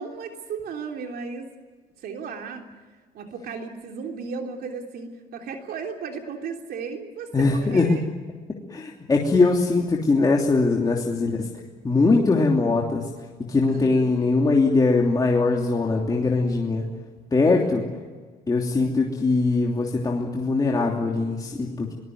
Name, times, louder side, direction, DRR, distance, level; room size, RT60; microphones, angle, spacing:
voice 1, 0.0-1.5 2.0-2.6 3.1-8.0 10.8-11.1 13.7-14.1 17.5-17.8, right 5 dB, 65° right, 3 dB, 3.3 m, -35 dB
voice 2, 7.3-8.0 8.7-11.5 11.8-13.0 13.5-16.8 17.3-17.9 18.5-21.9, left 3 dB, 20° left, -1 dB, 3.0 m, -21 dB
23.0 x 20.0 x 9.5 m, 1.4 s
cardioid pair, 110°, 17 cm